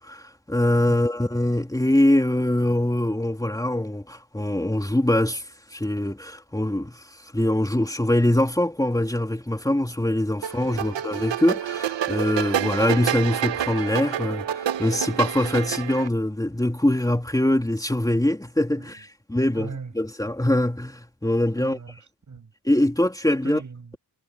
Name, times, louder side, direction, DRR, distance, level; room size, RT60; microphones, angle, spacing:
voice 1, 0.0-5.4 5.7-21.8 22.6-23.6, left 1 dB, 10° left, 3.2 m, -23 dB
sound 1, 10.4-16.1, right 10 dB, 85° right, 1.0 m, -28 dB
voice 2, 10.7-11.0 18.8-19.0 19.5-19.9 21.5-22.5 23.4-23.9, right 5 dB, 40° right, 7.8 m, -40 dB
wide cardioid pair, 120°, 43 cm